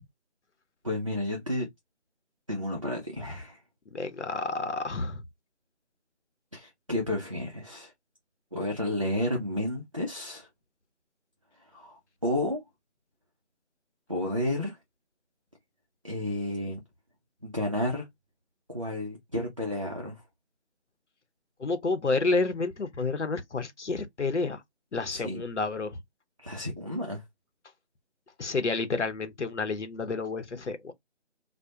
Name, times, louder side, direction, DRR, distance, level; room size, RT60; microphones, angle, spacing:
voice 1, 0.8-1.7 2.5-3.6 6.5-7.9 8.5-10.5 11.7-12.6 14.1-14.8 16.0-16.8 17.4-18.1 18.7-20.2 25.1-25.4 26.4-27.2, left 1 dB, 30° right, 0.5 m, -31 dB
voice 2, 3.9-5.2 21.6-24.6 24.9-26.0 28.4-30.9, left 3 dB, 85° left, 0.8 m, -30 dB
2.3 x 2.1 x 2.7 m
figure-of-eight pair, 160°, 35 cm